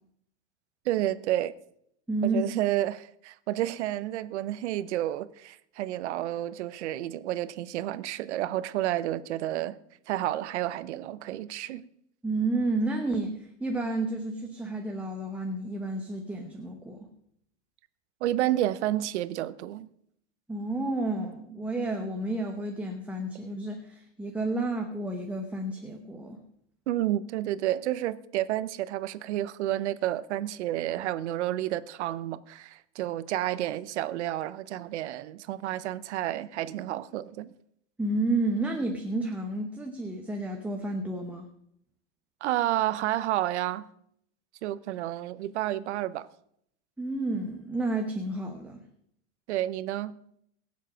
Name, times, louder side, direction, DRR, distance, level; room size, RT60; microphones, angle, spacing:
voice 1, 0.8-1.5 2.2-9.8 10.1-11.8 18.2-19.9 26.9-37.5 42.4-43.9 44.6-46.3 49.5-50.1, right 14 dB, 70° right, 0.9 m, -30 dB
voice 2, 2.1-2.5 12.2-17.1 20.5-26.4 38.0-41.5 47.0-48.8, right 2 dB, 5° right, 0.9 m, -31 dB
22.0 x 7.4 x 5.1 m
supercardioid pair, 155°, 36 cm